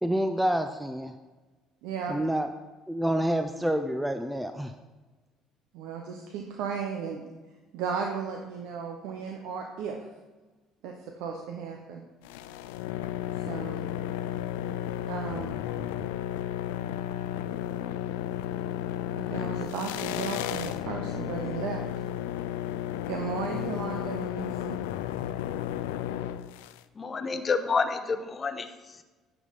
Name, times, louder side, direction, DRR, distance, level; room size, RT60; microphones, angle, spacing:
voice 1, 0.0-1.1 2.1-2.5 2.9-4.7, right 1 dB, 5° right, 7 dB, 0.5 m, -28 dB
voice 2, 1.8-2.3 5.7-7.2 7.7-10.0 10.8-12.0 13.3-13.8 15.1-15.5 19.1-21.8 23.1-24.8, right 6 dB, 80° right, 2 dB, 0.8 m, -35 dB
sound 1, 12.2-26.8, left 12 dB, 90° left, 0.3 m, -33 dB
voice 3, 27.0-28.7, left 4 dB, 35° left, 8 dB, 0.8 m, -28 dB
9.1 x 6.0 x 4.1 m, 1.2 s
supercardioid pair, 70°, 0 cm